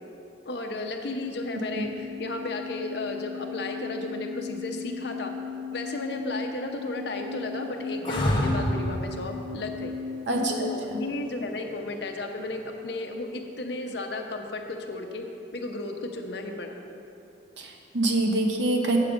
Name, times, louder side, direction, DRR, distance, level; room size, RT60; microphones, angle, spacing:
voice 1, 0.5-5.3 5.7-9.9 10.5-15.2 15.5-16.8, left 2 dB, 60° left, 3 dB, 0.8 m, -34 dB
sound 1, 1.2-10.8, left 5 dB, 45° right, 2.2 m, -37 dB
sound 2, 8.1-9.0 11.6-12.2, equal, 25° left, 1.1 m, -26 dB
voice 2, 10.3-11.0 17.6-19.0, right 2 dB, 70° right, 1 dB, 1.1 m, -26 dB
8.1 x 7.4 x 5.1 m, 2.7 s
head